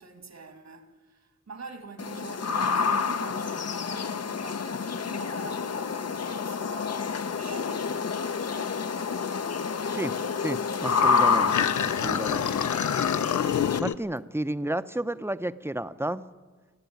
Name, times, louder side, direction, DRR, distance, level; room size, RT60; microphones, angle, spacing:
voice 1, 0.0-8.8, right 4 dB, 65° right, 2.0 m, -45 dB
sound 1, 2.0-13.8, left 5 dB, 60° left, 0.8 m, -28 dB
voice 2, 9.9-12.5 13.8-16.2, right 1 dB, 10° right, 0.7 m, -32 dB
sound 2, 10.9-14.0, left 9 dB, 85° left, 0.6 m, -28 dB
27.0 x 10.0 x 9.3 m
wide cardioid pair, 90°, 29 cm